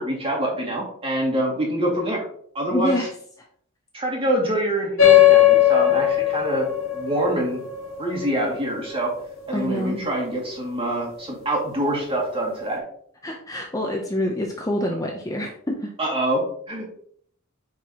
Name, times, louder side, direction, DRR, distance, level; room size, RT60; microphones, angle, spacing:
voice 1, 0.0-2.3 2.5-3.0 3.9-6.7 6.9-7.6 8.0-9.1 9.5-12.8 16.0-16.8, right 1 dB, 25° right, -2 dB, 2.5 m, -25 dB
voice 2, 2.7-3.1 9.5-10.1 13.2-15.9, left 1 dB, 15° left, 1 dB, 0.8 m, -26 dB
sound 1, 5.0-9.9, left 13 dB, 85° left, 1.8 m, -19 dB
9.5 x 4.7 x 3.0 m, 0.62 s
head